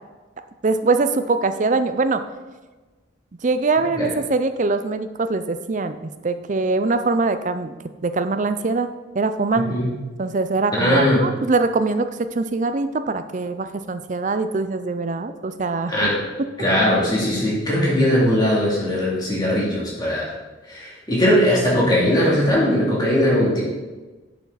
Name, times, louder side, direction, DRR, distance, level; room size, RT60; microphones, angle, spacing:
voice 1, 0.6-2.2 3.4-7.8 8.0-8.9 9.1-9.8 10.2-15.9, right 3 dB, 40° right, 10 dB, 0.5 m, -22 dB
voice 2, 9.6-9.9 10.7-11.3 15.9-16.2 16.6-20.3 20.7-23.6, left 1 dB, 20° left, -6 dB, 2.5 m, -19 dB
8.3 x 6.8 x 4.0 m, 1.2 s
head